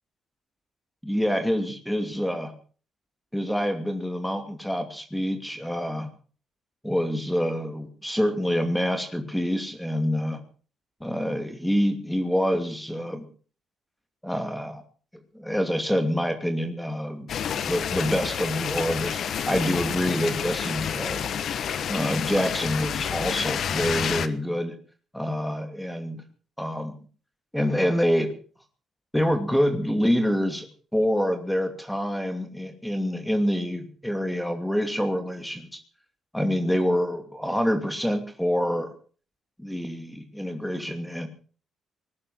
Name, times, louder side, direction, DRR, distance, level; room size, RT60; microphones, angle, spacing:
voice 1, 1.0-2.5 3.3-6.1 6.8-10.4 11.0-13.2 14.2-14.8 15.3-17.3 17.7-19.2 19.5-21.2 21.9-24.8 25.1-26.2 26.6-26.9 27.5-28.3 29.1-30.7 30.9-35.8 36.3-38.9 39.6-41.3, equal, 5° left, 7 dB, 2.7 m, -26 dB
sound 1, 17.3-24.3, left 8 dB, 65° left, 1.3 m, -29 dB
20.0 x 11.0 x 6.3 m, 0.42 s
cardioid pair, 105°, 0 cm